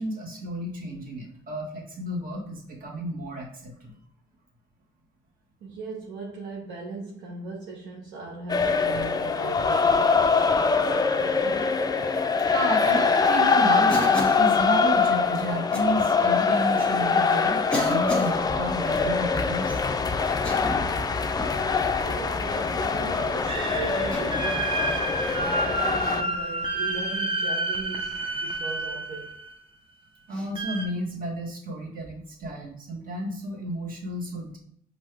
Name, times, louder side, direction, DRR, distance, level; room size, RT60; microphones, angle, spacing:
voice 1, 0.0-3.9 12.5-19.8 30.3-34.6, right 1 dB, 50° right, 1.6 m, -32 dB
voice 2, 5.6-11.7 22.0-29.4, right 3 dB, 75° right, 1.0 m, -38 dB
sound 1, 8.5-26.2, left 5 dB, 20° left, 0.4 m, -23 dB
Cough, 13.9-14.5 15.7-15.9 16.8-16.9 17.7-18.4 20.3-20.9 21.4-21.6 22.7-23.1 24.1-24.5 25.9-26.2 28.4-28.6 30.3-30.5, left 1 dB, 5° left, 1.5 m, -32 dB
sound 2, 23.5-29.5 30.6-30.9, right 2 dB, 25° right, 0.7 m, -29 dB
5.2 x 2.7 x 3.4 m
cardioid pair, 100°, 19 cm